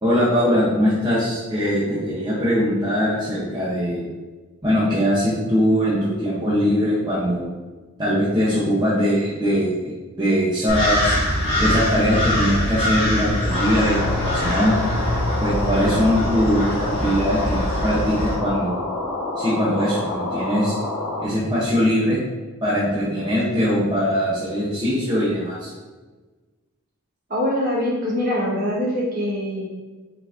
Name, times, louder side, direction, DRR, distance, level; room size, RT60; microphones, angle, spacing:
voice 1, 0.0-4.1 4.6-7.5 8.0-9.9 10.2-11.2 11.6-14.8 15.4-18.8 19.4-20.7 21.2-22.2 22.6-25.7, equal, 20° right, -9 dB, 0.8 m, -21 dB
sound 1, 10.7-18.3, left 1 dB, 25° left, 1.3 m, -23 dB
sound 2, 13.5-21.3, left 2 dB, 75° left, 0.8 m, -28 dB
voice 2, 27.3-29.7, left 1 dB, 40° right, -5 dB, 1.3 m, -23 dB
4.8 x 3.9 x 2.6 m, 1.3 s
head